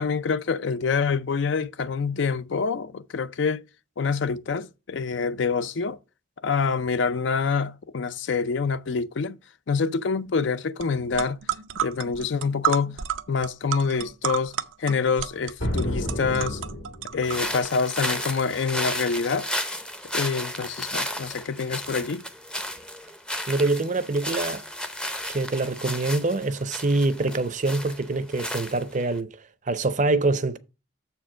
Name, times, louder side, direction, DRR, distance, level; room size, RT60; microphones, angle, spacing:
voice 1, 0.0-3.6 4.0-6.0 6.4-9.4 9.7-11.4 11.8-13.0 13.3-16.6 17.1-19.5 20.1-22.2, left 5 dB, 65° left, 0.5 m, -26 dB
sound 1, 10.8-10.9 11.1-17.7, right 9 dB, 85° right, 0.6 m, -31 dB
sound 2, 15.6-17.3, equal, 85° left, 2.3 m, -30 dB
sound 3, 17.2-29.2, left 1 dB, 5° left, 0.6 m, -33 dB
voice 2, 23.5-24.6 25.3-29.3 29.7-30.6, right 2 dB, 40° right, 0.6 m, -25 dB
7.0 x 4.6 x 6.1 m
head